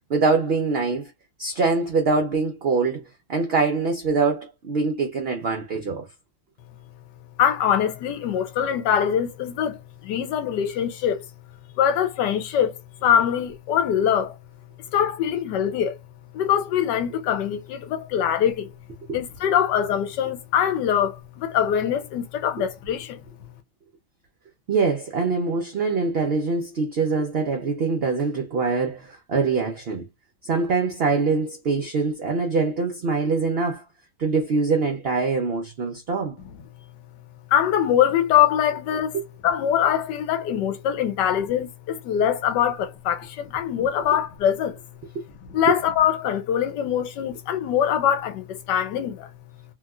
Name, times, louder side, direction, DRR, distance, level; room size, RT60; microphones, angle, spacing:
voice 1, 0.1-1.1 1.4-3.0 3.3-6.1 24.7-30.1 30.4-33.8 34.2-36.4 39.1-39.3 45.1-45.2 45.7-45.8, right 4 dB, 70° right, 0.5 m, -24 dB
voice 2, 7.4-11.2 11.8-12.7 13.0-14.4 14.9-16.0 16.3-18.7 19.1-23.2 37.5-39.2 39.4-44.8 45.5-49.3, left 9 dB, 90° left, 1.3 m, -23 dB
2.9 x 2.8 x 2.3 m
omnidirectional pair, 1.8 m